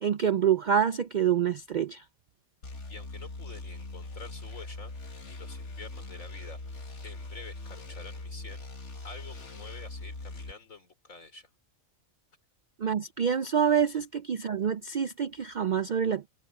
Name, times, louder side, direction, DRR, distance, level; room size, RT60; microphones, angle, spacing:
voice 1, 0.0-2.0 12.8-16.3, right 8 dB, 65° right, 0.4 m, -26 dB
sound 1, 2.6-10.5, left 2 dB, 60° left, 2.2 m, -41 dB
voice 2, 2.9-4.9 5.3-6.6 7.0-8.7 9.0-11.5 13.9-14.0, left 3 dB, 90° left, 4.0 m, -48 dB
omnidirectional pair, 1.4 m